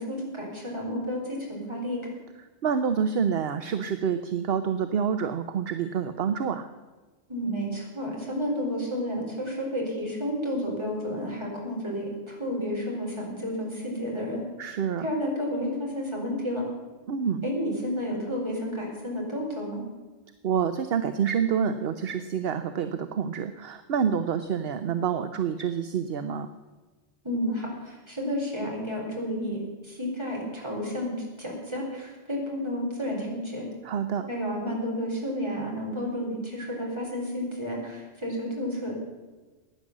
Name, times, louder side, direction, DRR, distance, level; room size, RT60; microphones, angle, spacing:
voice 1, 0.0-2.0 7.3-14.4 15.0-16.7 17.4-19.8 27.2-33.7 34.3-38.9, equal, 20° right, -2 dB, 4.5 m, -31 dB
voice 2, 2.6-6.7 14.6-15.1 17.1-17.5 20.4-26.5 33.8-34.3, right 7 dB, 55° right, 9 dB, 0.9 m, -27 dB
15.5 x 10.0 x 7.3 m, 1.3 s
omnidirectional pair, 1.3 m